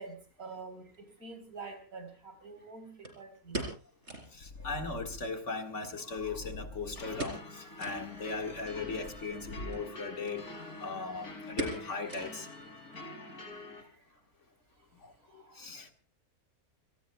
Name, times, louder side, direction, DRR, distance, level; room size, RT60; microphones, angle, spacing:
voice 1, 0.0-3.7 13.7-14.0 15.2-15.9, right 4 dB, 70° right, 7 dB, 4.5 m, -47 dB
sound 1, 0.9-1.0 3.0-4.4 4.7-4.8 5.1-5.2 5.8-6.7 7.1-7.5 7.8-8.0 8.5-8.6 9.6-9.9 10.3-10.4 10.7-11.0 11.6-12.6 12.9-13.0 13.6-13.9 14.2-14.3, right 1 dB, 45° right, 3.8 m, -40 dB
voice 2, 4.3-10.4 10.8-12.5 15.0-15.9, left 4 dB, 55° left, 5 dB, 2.1 m, -38 dB
Purr, 4.4-5.4 6.1-7.2 7.9-10.0, left 2 dB, 90° left, 3.5 m, -46 dB
sound 2, 7.0-13.8, left 2 dB, 75° left, 3.5 m, -46 dB
29.5 x 18.5 x 2.3 m, 0.35 s
omnidirectional pair, 1.6 m